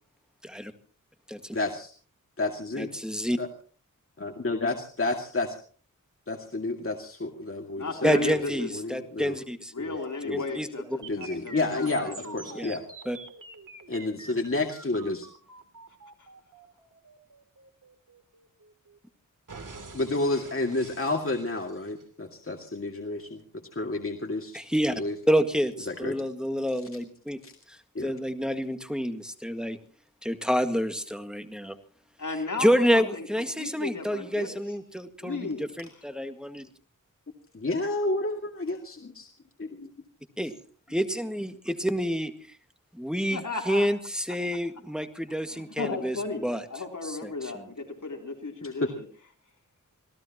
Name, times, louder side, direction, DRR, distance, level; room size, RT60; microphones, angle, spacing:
voice 1, 1.5-1.9 2.4-2.9 3.4-3.5 4.2-5.6 6.3-8.2 8.5-9.4 9.8-10.0 10.2-10.4 11.1-12.8 13.9-15.3 19.9-23.4 23.7-24.6 25.0-25.1 25.9-26.1 27.4-27.5 27.9-28.1 37.5-39.3 39.6-39.9 48.6-48.9, left 2 dB, 40° left, 2 dB, 2.3 m, -30 dB
voice 2, 2.8-3.4 8.0-9.7 10.3-11.0 12.5-12.8 13.1-13.2 24.5-24.9 25.3-27.4 27.7-27.8 28.0-29.8 30.2-31.8 32.6-36.7 40.4-40.6 40.9-42.3 42.9-46.7 47.0-47.7, equal, ahead, 7 dB, 1.9 m, -28 dB
voice 3, 7.8-8.7 9.7-12.6 32.2-33.2 33.6-34.5 35.2-35.7 43.3-43.9 45.5-46.4 46.7-48.8, left 3 dB, 65° left, 2 dB, 3.6 m, -34 dB
sound 1, 11.0-19.0 19.5-22.0, right 3 dB, 70° right, 3.0 m, -47 dB
27.0 x 17.5 x 3.0 m, 0.43 s
wide cardioid pair, 60°, 33 cm